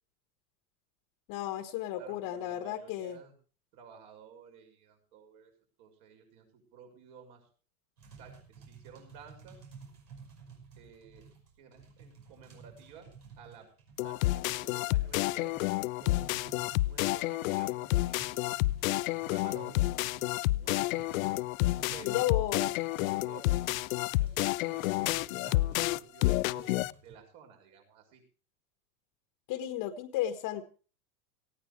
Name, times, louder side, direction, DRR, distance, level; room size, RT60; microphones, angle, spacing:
voice 1, 1.3-3.2 22.0-22.6 29.5-30.6, left 12 dB, 45° left, 8 dB, 1.5 m, -33 dB
voice 2, 1.9-3.3 3.7-5.5 5.8-7.5 8.1-9.7 10.8-11.3 11.6-13.1 13.4-13.7 14.0-15.6 16.0-16.4 16.8-18.4 19.1-19.9 20.5-21.2 21.9-23.5 24.2-26.7 27.0-28.2, right 6 dB, 50° right, 4 dB, 6.2 m, -53 dB
sound 1, 8.0-26.1 26.6-27.1, right 5 dB, 75° right, 5.7 m, -54 dB
sound 2, 14.0-26.9, left 18 dB, 60° left, 0.6 m, -30 dB
18.5 x 16.0 x 3.3 m, 0.39 s
hypercardioid pair, 90°, 47 cm